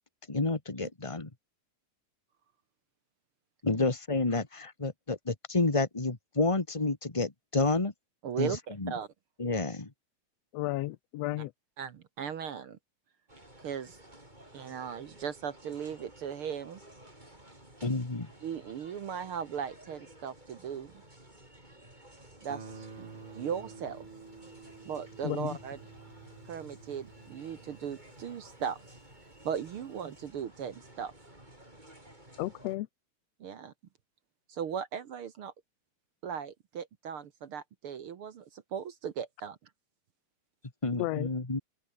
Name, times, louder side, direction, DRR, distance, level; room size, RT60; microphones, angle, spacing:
voice 1, 0.3-1.3 3.6-7.9 8.4-8.5 8.8-8.9 9.4-9.9 17.8-18.3 40.8-41.6, left 3 dB, 20° left, 0.7 m, -29 dB
voice 2, 8.2-9.1 11.8-12.8 13.6-14.0 14.5-16.8 18.4-20.9 22.4-24.1 24.8-25.8 26.4-28.8 29.4-31.1 33.4-33.7 34.5-35.5 36.2-39.6, right 7 dB, 60° right, 1.5 m, -38 dB
voice 3, 10.5-11.5 25.2-25.6 32.4-32.9 40.9-41.3, left 16 dB, 85° left, 1.5 m, -33 dB
sound 1, 13.3-32.8, right 1 dB, 10° right, 7.2 m, -54 dB
Guitar, 22.5-29.2, right 4 dB, 40° right, 4.7 m, -50 dB
open air
omnidirectional pair, 3.9 m